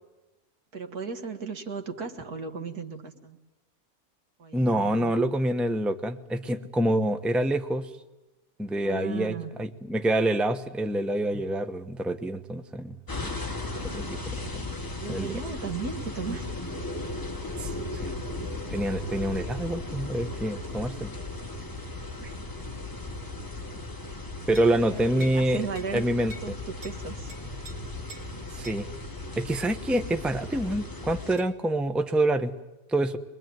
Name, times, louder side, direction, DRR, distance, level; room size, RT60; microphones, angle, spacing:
voice 1, 0.7-3.4 4.4-5.1 8.8-9.5 15.0-16.8 22.2-22.5 24.7-26.1 26.4-27.3, right 5 dB, 85° right, 5 dB, 2.3 m, -36 dB
voice 2, 4.5-7.9 8.6-13.0 13.2-13.4 13.8-14.6 15.1-15.4 17.6-17.7 18.0-18.2 18.7-21.1 24.5-25.6 25.9-26.5 28.5-28.9 29.4-32.5 32.9-33.2, right 1 dB, ahead, 8 dB, 0.8 m, -27 dB
sound 1, 13.1-31.4, left 2 dB, 15° left, 1.3 m, -36 dB
sound 2, 24.5-24.8 25.2-25.4 25.8-25.9 26.3-26.5 26.8-27.0 27.3-27.7 28.1-28.3 28.6-28.8 29.5-29.7 31.4-31.5, left 1 dB, 65° right, 3.1 m, -45 dB
23.0 x 22.0 x 9.4 m, 1.1 s
omnidirectional pair, 1.6 m